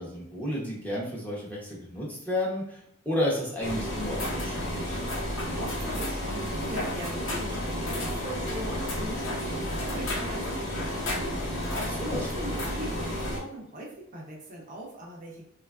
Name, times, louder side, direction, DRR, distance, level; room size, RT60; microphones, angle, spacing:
voice 1, 0.0-5.0 11.7-12.3, left 1 dB, 10° left, -5 dB, 0.7 m, -32 dB
sound 1, 3.6-13.4, left 1 dB, 65° left, 0.7 m, -31 dB
voice 2, 5.2-15.4, right 1 dB, 40° right, -3 dB, 0.6 m, -41 dB
3.0 x 2.3 x 2.3 m, 0.73 s
head